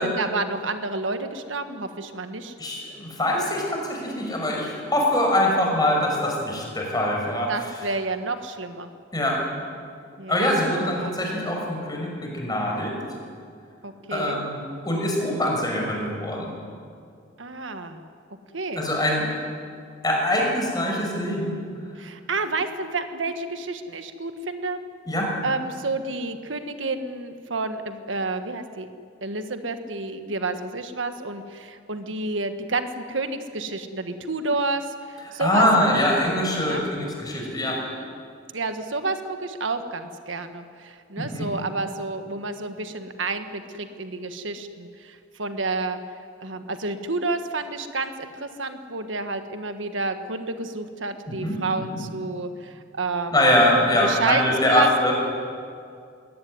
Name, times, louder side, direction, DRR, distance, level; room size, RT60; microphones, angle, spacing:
voice 1, 0.0-2.5 7.5-8.9 10.2-10.5 11.0-11.1 13.8-14.4 17.4-18.0 18.5-18.9 22.0-24.8 25.4-28.9 29.2-35.7 36.1-36.2 36.7-36.8 37.6-38.1 38.5-46.0 46.4-53.6 54.0-54.9, right 3 dB, 80° right, 8 dB, 1.5 m, -30 dB
voice 2, 2.6-7.5 9.1-9.4 10.3-12.9 14.1-16.5 18.8-19.3 20.0-21.5 25.1-25.3 35.4-37.8 41.2-41.5 51.3-52.0 53.3-55.2, left 1 dB, 20° left, 0 dB, 6.0 m, -23 dB
22.0 x 17.5 x 9.6 m, 2.3 s
head